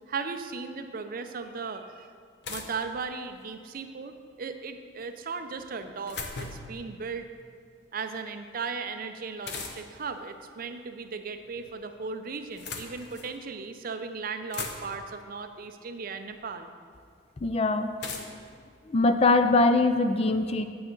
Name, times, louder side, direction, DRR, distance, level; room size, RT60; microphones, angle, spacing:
voice 1, 0.1-2.1 2.5-7.3 7.9-16.7 18.1-18.2, right 4 dB, 50° right, 8 dB, 0.5 m, -37 dB
sound 1, 1.4-1.5 2.4-3.6 5.6-6.8 9.4-10.1 11.2-11.8 12.4-13.4 14.0-14.1 14.3-15.2 16.3-16.4 18.0-19.5, left 4 dB, 65° left, 0.8 m, -40 dB
voice 2, 17.4-17.9 18.9-20.7, left 3 dB, 35° left, 9 dB, 0.4 m, -22 dB
8.8 x 7.8 x 3.9 m, 2.2 s
head